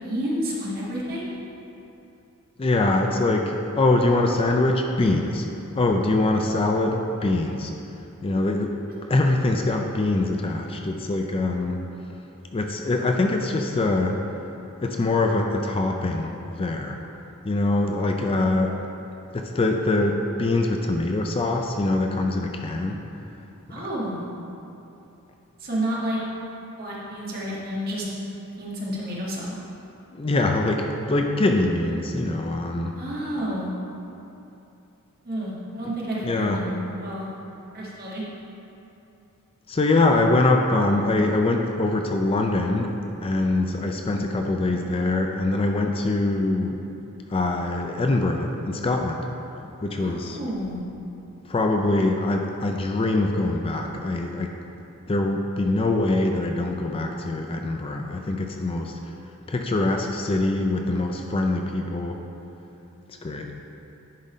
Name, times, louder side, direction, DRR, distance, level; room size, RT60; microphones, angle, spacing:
voice 1, 0.0-1.3 8.3-8.4 23.7-24.2 25.6-26.2 26.8-28.0 28.5-29.4 33.0-33.7 35.2-37.3 37.7-38.2 50.0-50.8, equal, 45° right, -6 dB, 1.7 m, -30 dB
voice 2, 2.6-5.5 5.8-7.7 8.2-8.7 9.1-11.9 12.5-14.2 14.8-17.0 17.4-18.8 19.3-23.0 23.7-23.9 30.1-33.0 36.2-36.6 39.7-42.9 43.2-46.8 47.3-49.3 49.8-50.4 51.5-54.6 55.1-59.1 59.5-62.2 63.2-63.5, left 2 dB, 25° left, 3 dB, 0.4 m, -23 dB
10.5 x 4.0 x 5.0 m, 2.8 s
head